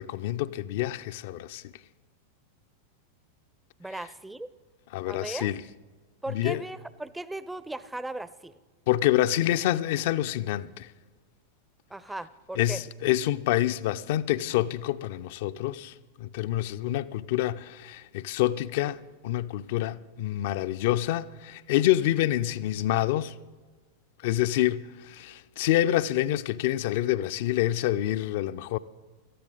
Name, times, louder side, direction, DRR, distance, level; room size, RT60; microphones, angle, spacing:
voice 1, 0.0-1.6 4.9-5.6 6.3-6.6 8.9-10.9 12.6-23.3 24.2-28.8, left 13 dB, 50° left, 0.4 m, -27 dB
voice 2, 3.8-4.5 5.1-5.5 6.2-8.5 11.9-12.8, right 2 dB, 5° right, 0.4 m, -37 dB
18.0 x 13.5 x 4.0 m
figure-of-eight pair, 90°, 0 cm